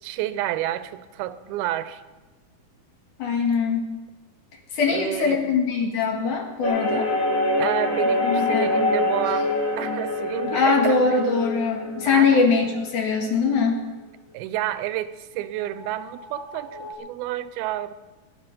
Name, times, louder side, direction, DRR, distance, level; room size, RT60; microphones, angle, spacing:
voice 1, 0.0-2.0 4.9-5.4 7.6-9.5 9.8-11.2 12.1-12.5 14.3-17.9, right 13 dB, 90° right, 13 dB, 2.6 m, -30 dB
voice 2, 3.2-3.9 4.7-7.1 8.2-8.7 10.5-13.8, left 5 dB, 60° left, 1 dB, 2.9 m, -22 dB
sound 1, 6.6-13.4 15.7-16.9, left 2 dB, 30° left, 1.6 m, -26 dB
19.0 x 10.5 x 5.2 m, 1.2 s
omnidirectional pair, 4.3 m